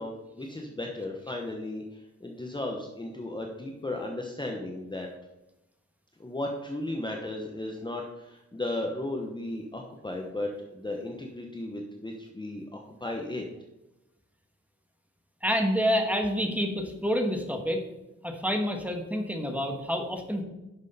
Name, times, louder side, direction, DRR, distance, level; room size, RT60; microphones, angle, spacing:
voice 1, 0.0-5.1 6.2-13.5, left 1 dB, 15° left, 1 dB, 0.9 m, -35 dB
voice 2, 15.4-17.8 18.2-20.4, equal, 5° right, 3 dB, 1.3 m, -28 dB
10.5 x 6.3 x 4.1 m, 0.94 s
wide cardioid pair, 150°, 29 cm